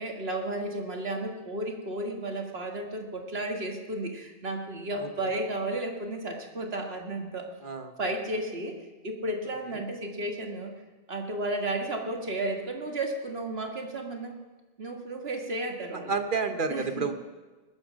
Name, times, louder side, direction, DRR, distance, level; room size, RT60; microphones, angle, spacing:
voice 1, 0.0-7.5 8.0-8.8 9.0-10.7 11.1-14.3 14.8-16.2 16.7-17.1, right 1 dB, 75° right, 2 dB, 2.1 m, -33 dB
voice 2, 7.6-7.9 16.1-17.1, right 4 dB, 55° right, 7 dB, 1.2 m, -29 dB
20.5 x 9.1 x 6.3 m, 1.3 s
omnidirectional pair, 1.0 m